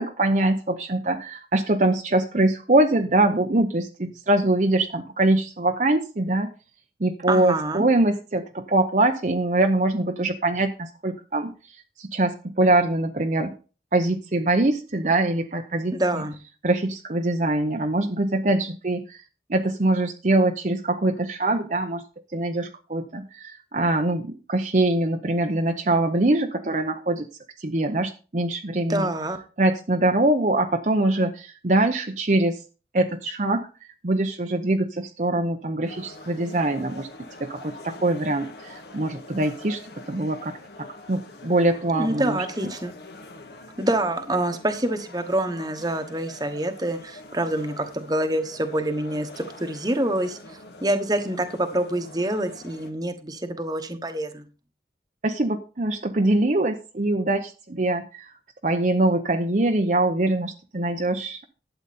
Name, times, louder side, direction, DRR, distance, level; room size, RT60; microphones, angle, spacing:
voice 1, 0.0-6.5 7.0-13.5 13.9-16.2 16.6-19.2 19.5-22.0 22.3-27.3 27.6-29.1 29.6-32.6 32.9-33.7 34.0-37.1 37.4-39.8 40.1-40.5 40.8-42.5 55.2-58.3 58.6-61.4, right 2 dB, 45° right, 4 dB, 0.8 m, -23 dB
voice 2, 7.3-7.8 15.9-16.3 28.9-29.4 41.9-42.9 43.8-50.4 50.8-54.4, right 1 dB, 20° right, 8 dB, 1.2 m, -26 dB
sound 1, 35.8-52.9, left 2 dB, 70° left, 1.8 m, -44 dB
12.0 x 8.1 x 4.2 m, 0.35 s
head